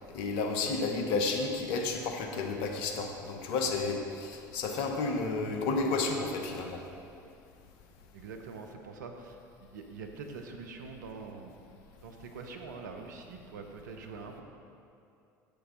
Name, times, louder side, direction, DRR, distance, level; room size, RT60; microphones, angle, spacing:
voice 1, 0.1-6.8, left 3 dB, 70° left, 4 dB, 1.1 m, -31 dB
voice 2, 8.1-11.5 12.0-14.4, right 4 dB, 85° right, 4 dB, 0.9 m, -44 dB
10.0 x 8.1 x 3.9 m, 2.6 s
hypercardioid pair, 70°, 10 cm